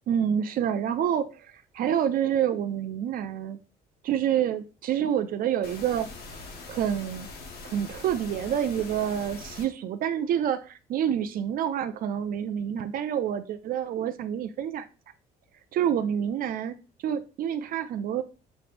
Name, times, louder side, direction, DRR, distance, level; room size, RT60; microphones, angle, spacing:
voice 1, 0.1-3.6 4.0-6.4 6.7-7.3 7.6-14.9 15.7-16.8 17.0-18.2, right 9 dB, 60° right, 0.4 m, -28 dB
sound 1, 5.6-9.6, left 3 dB, 70° left, 1.1 m, -42 dB
6.2 x 3.3 x 2.5 m
cardioid pair, 110°, 17 cm